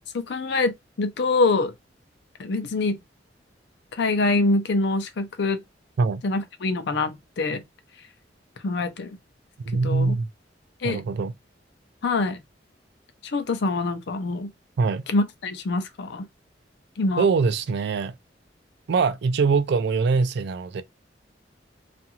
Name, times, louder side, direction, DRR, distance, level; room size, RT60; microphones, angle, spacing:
voice 1, 0.1-1.7 2.4-3.0 3.9-5.6 6.2-7.6 8.6-9.2 9.7-10.2 10.8-11.0 12.0-12.4 13.3-14.5 15.1-16.3 17.0-17.3, left 3 dB, 65° left, 0.5 m, -25 dB
voice 2, 9.7-10.3 10.8-11.3 14.8-15.0 17.2-18.1 18.9-20.8, right 4 dB, 65° right, 0.4 m, -23 dB
2.5 x 2.3 x 2.8 m
head